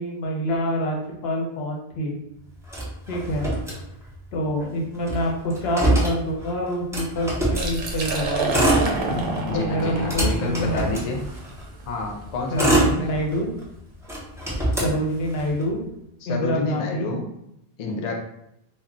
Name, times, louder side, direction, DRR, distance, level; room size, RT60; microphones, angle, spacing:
voice 1, 0.0-2.2 3.1-3.5 4.3-8.7 9.5-11.0 12.5-13.5 14.8-15.8 16.3-17.1, equal, 80° left, 0 dB, 0.9 m, -26 dB
Motor vehicle (road), 2.7-4.3 4.6-4.7 4.9-7.7 8.4-9.4 9.8-11.6 12.2-13.6 14.0-15.6, right 1 dB, 5° right, 0.5 m, -24 dB
Liquid, 7.5-13.2, right 2 dB, 70° right, 0.8 m, -29 dB
voice 2, 9.4-11.2 11.9-13.1 14.8-14.9 16.2-17.3 17.8-18.1, left 2 dB, 55° left, 1 dB, 0.5 m, -29 dB
2.2 x 2.1 x 3.6 m, 0.81 s
omnidirectional pair, 1.0 m